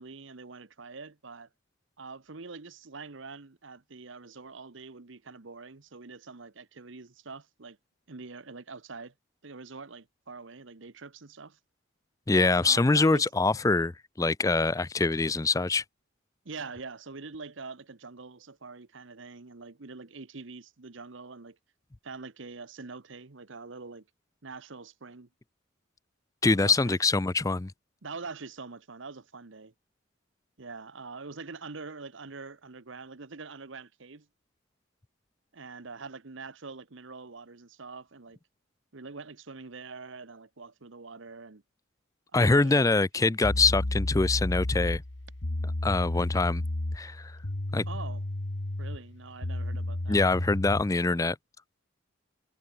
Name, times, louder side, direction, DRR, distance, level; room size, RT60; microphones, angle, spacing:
voice 1, 0.0-1.5 2.0-7.8 8.1-9.1 9.4-11.6 12.6-13.3 16.4-21.6 22.0-24.0 24.4-25.3 26.4-27.0 28.0-29.7 30.6-34.3 35.5-38.4 38.9-41.6 42.3-42.9 47.9-48.2 48.8-50.2, right 4 dB, 65° right, 1.0 m, -44 dB
voice 2, 12.3-13.9 14.2-15.8 26.4-27.7 42.3-45.0 45.8-46.6 46.9-47.4 47.7-47.9 50.1-51.4, left 3 dB, 15° left, 0.4 m, -24 dB
sound 1, 43.4-50.9, left 1 dB, 60° left, 1.5 m, -32 dB
head